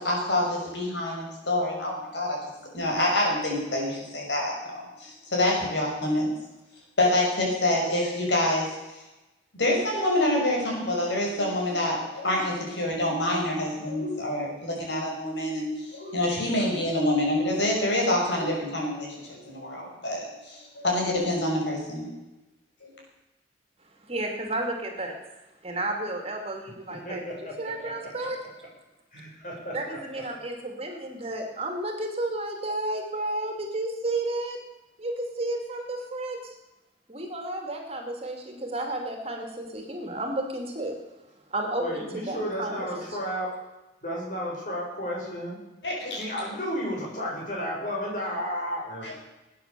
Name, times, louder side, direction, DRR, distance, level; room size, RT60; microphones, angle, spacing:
voice 1, 0.0-2.4 2.7-6.3 7.0-9.0 9.5-22.1 22.8-22.9 45.8-46.2 49.0-49.1, left 1 dB, 70° left, -1 dB, 6.1 m, -27 dB
voice 2, 24.1-25.1 25.6-27.2 27.6-28.4 29.7-34.6 35.0-36.6 37.1-41.0 41.5-43.1, right 2 dB, 35° right, 3 dB, 2.6 m, -32 dB
voice 3, 26.9-28.1 29.1-30.0 41.8-43.6 44.0-45.6 46.1-49.1, equal, 45° left, -3 dB, 6.7 m, -33 dB
19.5 x 9.4 x 6.9 m, 1.0 s
head